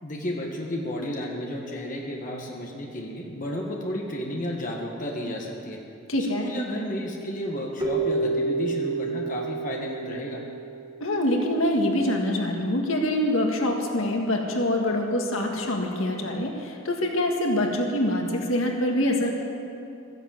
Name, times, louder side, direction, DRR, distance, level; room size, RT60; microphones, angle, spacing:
voice 1, 0.0-5.8 6.3-10.4, left 1 dB, 40° left, -1 dB, 1.7 m, -32 dB
voice 2, 6.1-6.5 11.0-19.3, left 1 dB, 85° left, 1 dB, 1.8 m, -25 dB
Keyboard (musical), 7.8-11.1, right 3 dB, 20° right, 1.5 m, -29 dB
13.5 x 11.0 x 7.9 m, 2.6 s
head